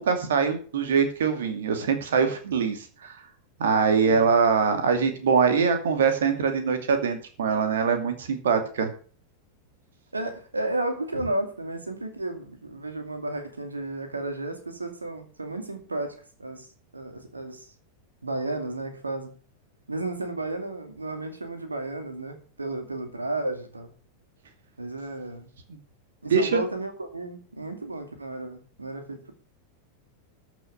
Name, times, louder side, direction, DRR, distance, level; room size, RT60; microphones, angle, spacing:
voice 1, 0.0-3.2 3.6-8.9 26.3-26.6, right 6 dB, 60° right, 7 dB, 2.4 m, -23 dB
voice 2, 10.1-16.7 16.9-17.7 18.2-19.3 19.9-23.9 24.8-25.5 26.2-29.3, right 2 dB, 80° right, 6 dB, 2.5 m, -33 dB
13.5 x 6.2 x 6.8 m, 0.41 s
figure-of-eight pair, 90°, 0 cm